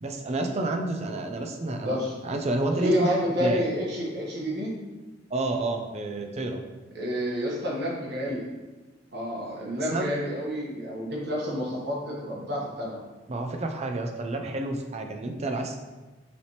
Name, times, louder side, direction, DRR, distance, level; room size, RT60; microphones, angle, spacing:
voice 1, 0.0-2.0 2.2-3.1 3.4-3.6 5.3-6.6 9.9-10.1 13.3-15.8, right 2 dB, 35° right, 4 dB, 0.5 m, -29 dB
voice 2, 1.8-2.2 2.8-4.7 6.9-8.5 9.1-13.0, equal, 60° right, -4 dB, 1.1 m, -29 dB
5.5 x 3.3 x 2.9 m, 1.2 s
head